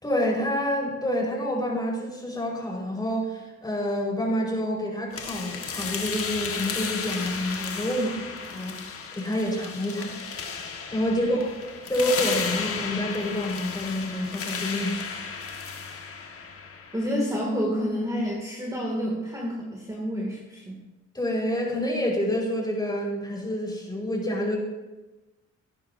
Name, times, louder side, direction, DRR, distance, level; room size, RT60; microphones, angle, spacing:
voice 1, 0.0-8.8 9.1-10.2 10.9-11.4 11.9-15.2 21.1-24.6, left 1 dB, 15° left, -3 dB, 4.9 m, -28 dB
sound 1, 5.1-17.1, left 5 dB, 50° left, 1.8 m, -34 dB
voice 2, 16.9-20.8, equal, 10° right, -3 dB, 2.5 m, -29 dB
18.0 x 10.5 x 2.8 m, 1.1 s
cardioid pair, 90°, 30 cm